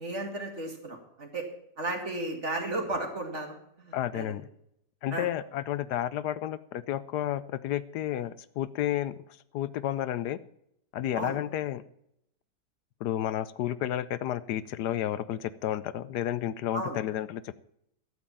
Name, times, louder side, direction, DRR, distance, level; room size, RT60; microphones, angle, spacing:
voice 1, 0.0-1.4 1.8-4.2 5.1-5.3 11.1-11.4 16.7-17.0, right 2 dB, 45° right, 3 dB, 2.6 m, -34 dB
voice 2, 3.9-4.5 5.0-9.2 9.5-10.4 10.9-11.8 13.0-17.6, left 12 dB, 80° left, 15 dB, 1.2 m, -31 dB
12.0 x 7.8 x 7.3 m, 0.75 s
omnidirectional pair, 1.8 m